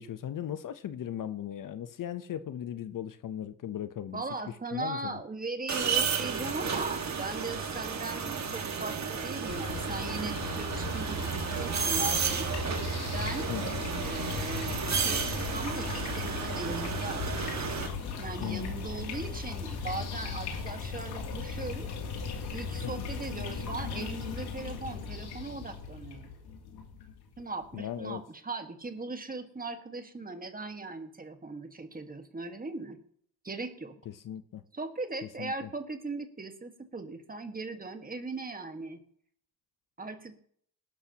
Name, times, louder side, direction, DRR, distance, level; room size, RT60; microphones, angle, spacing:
voice 1, 0.0-4.2 4.7-5.2 13.5-13.7 18.4-18.7 22.8-23.0 27.7-28.2 34.2-34.6 35.4-35.7, left 10 dB, 55° left, 0.8 m, -37 dB
voice 2, 4.1-12.5 13.1-13.5 14.0-17.2 18.2-21.9 22.5-26.3 27.4-33.0 33.4-33.9 34.7-39.0 40.0-40.4, right 3 dB, 20° right, 1.6 m, -39 dB
sound 1, 5.7-17.9, right 6 dB, 45° right, 1.8 m, -32 dB
sound 2, 9.5-27.7, left 5 dB, 90° left, 2.9 m, -37 dB
19.5 x 12.0 x 2.9 m
cardioid pair, 90°, 38 cm